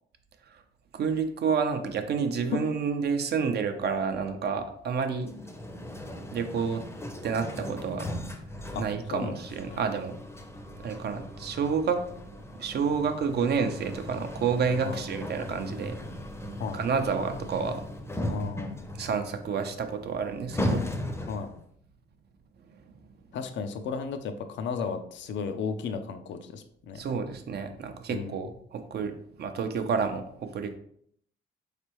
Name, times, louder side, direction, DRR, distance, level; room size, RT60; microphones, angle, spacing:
voice 1, 0.9-5.3 6.3-6.8 7.2-8.1 8.8-10.2 10.8-12.0 12.5-16.0 16.5-17.9 18.9-20.9 22.7-22.9 26.9-30.8, right 6 dB, 55° right, 7 dB, 0.6 m, -29 dB
sound 1, 5.2-21.6, left 1 dB, 10° left, 0.6 m, -37 dB
voice 2, 18.3-18.8 21.3-21.5 23.3-27.0 28.1-28.4, left 5 dB, 65° left, 8 dB, 0.5 m, -34 dB
4.3 x 3.3 x 3.0 m, 0.67 s
cardioid pair, 90°, 20 cm